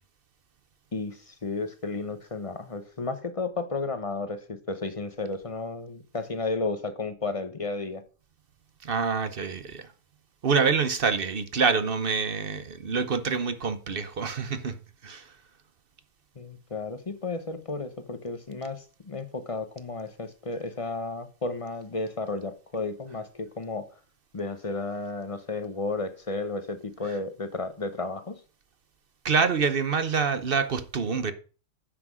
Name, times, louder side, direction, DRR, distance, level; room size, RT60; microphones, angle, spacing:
voice 1, 0.9-8.0 16.4-23.8 24.3-28.3, left 3 dB, 30° left, 1.0 m, -33 dB
voice 2, 8.8-9.9 10.4-14.7 15.0-15.3 27.0-27.2 29.2-31.3, right 5 dB, 50° right, 1.0 m, -26 dB
9.8 x 6.0 x 6.2 m
omnidirectional pair, 1.3 m